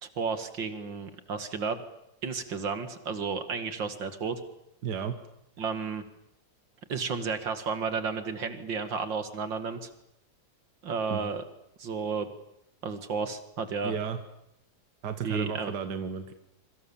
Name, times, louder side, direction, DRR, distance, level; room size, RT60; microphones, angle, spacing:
voice 1, 0.0-1.8 2.2-4.4 5.6-6.0 6.9-9.9 10.8-11.4 11.8-12.3 12.8-13.9 15.2-15.7, right 5 dB, 80° right, 9 dB, 2.8 m, -32 dB
voice 2, 4.8-5.2 11.1-11.3 13.8-14.2 15.0-16.3, right 7 dB, 65° right, 8 dB, 2.1 m, -33 dB
27.5 x 24.5 x 7.3 m, 0.79 s
omnidirectional pair, 2.0 m